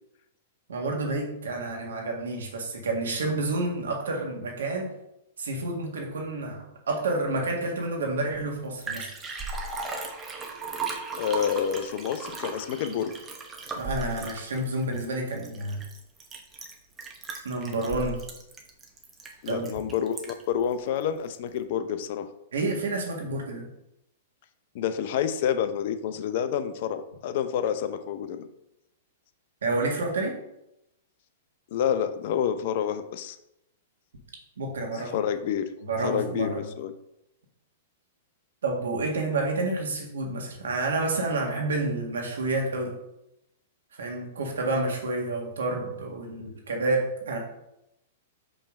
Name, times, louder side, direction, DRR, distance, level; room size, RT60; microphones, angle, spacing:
voice 1, 0.7-4.9 5.4-9.1 13.7-15.8 17.4-18.2 19.5-19.7 22.5-23.6 29.6-30.3 34.6-35.1 35.9-36.7 38.6-42.9 43.9-47.4, right 2 dB, 80° right, 0 dB, 1.7 m, -29 dB
Liquid, 8.3-8.4 8.6-20.6 21.0-21.1, right 3 dB, 20° right, 1.1 m, -37 dB
voice 2, 11.2-13.1 19.4-22.3 24.7-28.5 31.7-33.4 34.9-35.7 36.0-36.9, left 8 dB, 55° left, 10 dB, 0.6 m, -28 dB
5.5 x 3.4 x 5.4 m, 0.85 s
hypercardioid pair, 115°, 0 cm